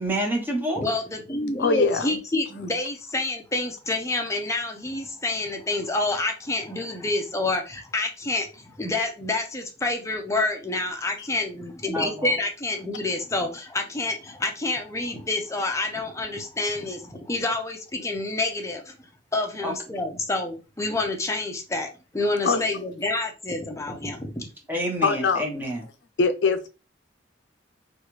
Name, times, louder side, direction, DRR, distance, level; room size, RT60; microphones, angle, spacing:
voice 1, 0.0-0.8 11.9-12.4 19.6-19.7 24.7-25.9, right 1 dB, 10° right, 0 dB, 0.8 m, -28 dB
voice 2, 0.8-19.0 19.3-24.5, left 2 dB, 15° left, 3 dB, 0.5 m, -28 dB
voice 3, 1.6-2.1 22.4-22.6 25.0-25.4 26.2-26.7, left 4 dB, 70° left, 9 dB, 0.4 m, -22 dB
3.1 x 2.3 x 3.0 m, 0.31 s
head